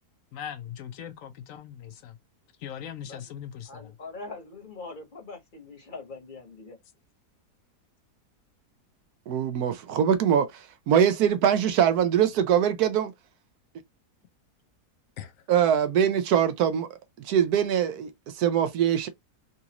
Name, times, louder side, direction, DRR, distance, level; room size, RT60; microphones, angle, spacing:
voice 1, 0.3-2.2 2.6-4.0 15.2-15.3, left 9 dB, 65° left, 0.9 m, -40 dB
voice 2, 3.7-6.8, left 3 dB, 35° left, 1.1 m, -42 dB
voice 3, 9.3-13.1 15.5-16.9 17.2-19.1, right 9 dB, 75° right, 1.1 m, -23 dB
3.9 x 2.5 x 2.9 m
omnidirectional pair, 1.7 m